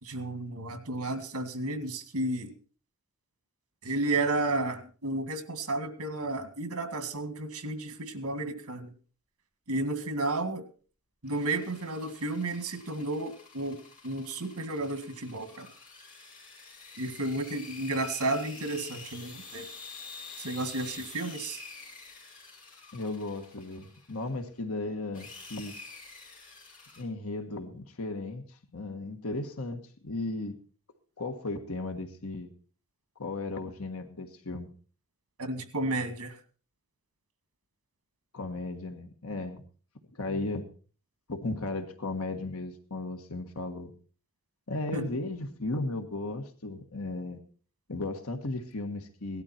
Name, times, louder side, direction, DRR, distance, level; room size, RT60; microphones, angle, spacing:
voice 1, 0.0-2.5 3.8-8.9 9.7-10.6 11.2-15.7 17.0-19.7 20.4-21.6 35.4-36.4 44.9-45.0, right 2 dB, 80° right, 9 dB, 2.1 m, -32 dB
sound 1, 11.2-24.4 25.1-27.0, left 4 dB, 35° left, 5.0 m, -48 dB
voice 2, 22.9-25.7 27.0-30.6 31.2-32.5 33.2-34.7 38.3-39.6 40.1-40.6 41.3-43.9 44.7-47.4 47.9-49.4, left 2 dB, 70° left, 7 dB, 1.5 m, -35 dB
18.0 x 12.0 x 4.3 m, 0.39 s
head